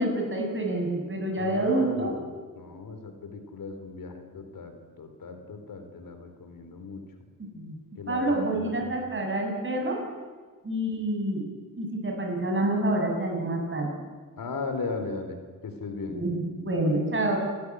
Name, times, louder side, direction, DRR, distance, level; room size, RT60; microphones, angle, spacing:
voice 1, 0.0-2.1 7.4-7.8 8.1-10.0 10.6-11.4 11.8-13.9 16.1-17.4, right 1 dB, 35° right, 1 dB, 6.8 m, -27 dB
voice 2, 1.4-7.0 8.0-8.9 14.4-15.4 15.6-16.2, left 4 dB, 70° left, 7 dB, 3.6 m, -37 dB
28.5 x 13.5 x 9.8 m, 1.5 s
cardioid pair, 100°, 35 cm